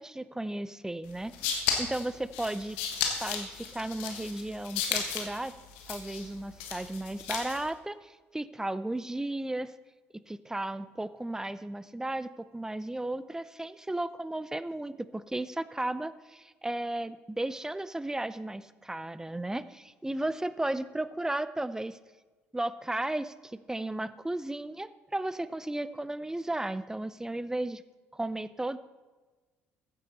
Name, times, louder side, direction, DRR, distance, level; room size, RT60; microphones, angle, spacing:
voice 1, 0.0-2.8 3.1-5.6 5.9-9.7 10.1-22.0 22.5-27.8 28.1-28.8, right 1 dB, 10° right, 15 dB, 0.5 m, -34 dB
sound 1, 1.1-7.7, left 7 dB, 70° left, 1.5 m, -34 dB
15.0 x 8.3 x 4.1 m, 1.3 s
figure-of-eight pair, 50°, 7 cm